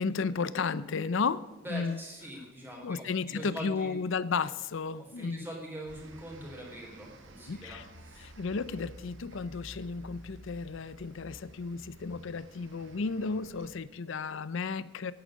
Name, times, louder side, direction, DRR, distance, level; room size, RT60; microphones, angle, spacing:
voice 1, 0.0-1.4 1.7-2.0 2.8-5.5 7.5-7.9 8.2-15.1, left 4 dB, 60° left, 16 dB, 0.5 m, -33 dB
voice 2, 1.6-3.9 5.0-8.3, equal, 10° right, -2 dB, 3.6 m, -43 dB
sound 1, 5.9-13.8, right 1 dB, 60° right, 1.4 m, -51 dB
10.5 x 8.9 x 6.3 m, 1.1 s
head